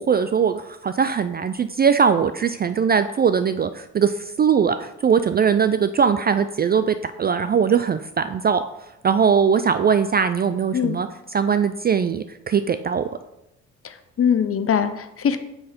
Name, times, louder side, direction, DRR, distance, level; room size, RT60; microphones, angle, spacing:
voice 1, 0.0-8.6 9.0-11.1 11.3-13.1, right 6 dB, 30° right, 11 dB, 0.3 m, -20 dB
voice 2, 13.8-15.4, left 7 dB, 40° left, 10 dB, 0.8 m, -22 dB
5.6 x 4.9 x 4.3 m, 0.88 s
hypercardioid pair, 55°, 36 cm